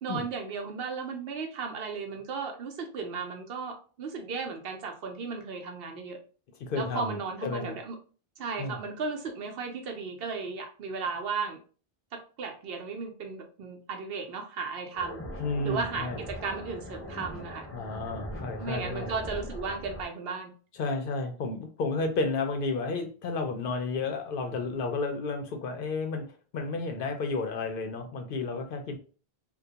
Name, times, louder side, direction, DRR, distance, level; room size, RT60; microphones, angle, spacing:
voice 1, 0.0-6.2 6.7-8.0 8.4-11.6 12.1-15.2 15.6-17.7 18.6-20.5, right 4 dB, 70° right, 4 dB, 0.8 m, -35 dB
voice 2, 6.6-7.2 7.4-7.8 8.6-8.8 15.4-16.2 17.7-19.1 20.7-29.0, left 3 dB, 65° left, 5 dB, 0.7 m, -32 dB
sound 1, 14.9-20.1, equal, 20° left, 0.5 m, -41 dB
2.3 x 2.2 x 2.7 m, 0.38 s
omnidirectional pair, 1.0 m